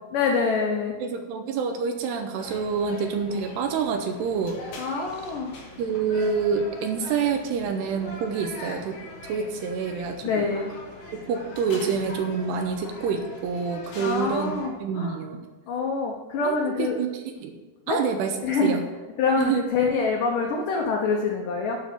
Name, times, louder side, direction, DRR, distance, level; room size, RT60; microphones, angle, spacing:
voice 1, 0.1-1.0 4.8-5.5 10.2-10.7 14.0-15.2 15.7-17.0 17.9-18.0 18.4-18.7 19.2-21.8, left 4 dB, 80° left, 1 dB, 1.9 m, -25 dB
voice 2, 1.0-5.1 5.8-10.5 11.1-15.5 16.4-16.6 17.0-17.6 17.9-18.4 18.6-18.8 19.4-19.6, right 5 dB, 80° right, 6 dB, 2.6 m, -27 dB
sound 1, 2.4-14.7, left 1 dB, 55° left, 3.8 m, -42 dB
9.7 x 6.5 x 7.6 m, 1.2 s
omnidirectional pair, 5.3 m